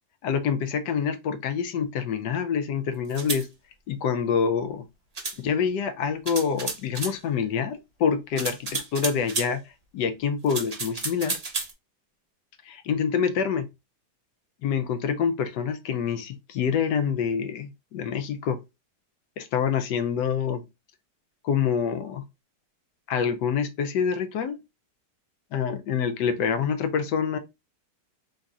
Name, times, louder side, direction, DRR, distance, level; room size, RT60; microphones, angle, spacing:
voice 1, 0.2-3.5 3.9-4.9 5.4-9.6 9.9-11.4 12.7-13.7 14.6-18.6 19.4-20.7 21.4-22.2 23.1-24.6 25.5-27.4, left 7 dB, 75° left, 1.2 m, -26 dB
sound 1, 3.1-3.4 5.2-5.4 6.3-7.2 8.4-9.5 10.5-11.7, right 4 dB, 55° right, 0.4 m, -31 dB
3.8 x 2.8 x 3.5 m
omnidirectional pair, 1.9 m